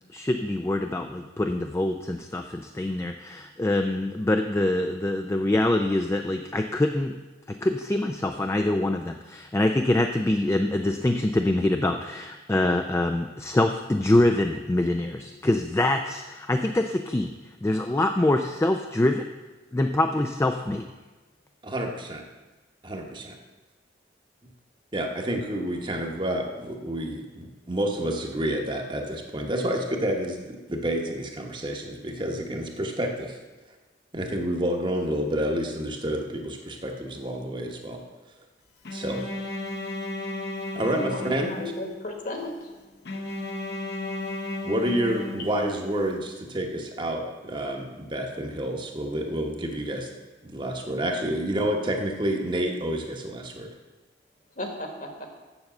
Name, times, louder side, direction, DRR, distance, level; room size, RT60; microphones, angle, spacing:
voice 1, 0.1-7.2 7.5-17.3 17.6-19.3 19.7-20.9, left 1 dB, 15° left, 5 dB, 0.3 m, -25 dB
voice 2, 21.6-22.2 22.8-23.4 24.9-33.4 34.1-38.0 38.9-39.2 40.7-41.5 44.6-50.1 50.4-53.7, right 1 dB, 25° right, 2 dB, 1.0 m, -29 dB
Bowed string instrument, 38.8-42.1 43.0-46.0, left 2 dB, 60° left, 1.0 m, -34 dB
voice 3, 41.0-42.7 54.6-55.3, left 1 dB, 45° left, 3 dB, 1.5 m, -35 dB
7.1 x 6.7 x 7.6 m, 1.2 s
head